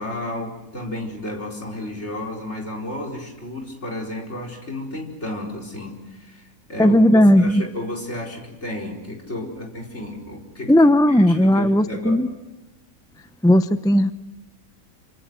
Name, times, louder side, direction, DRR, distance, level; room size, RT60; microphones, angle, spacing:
voice 1, 0.0-7.0 7.4-10.7 11.1-12.2, left 1 dB, 50° left, 0 dB, 5.0 m, -32 dB
voice 2, 6.8-7.6 10.7-12.3 13.4-14.1, left 1 dB, 5° left, 11 dB, 0.4 m, -15 dB
28.5 x 26.0 x 6.2 m, 1.0 s
omnidirectional pair, 1.5 m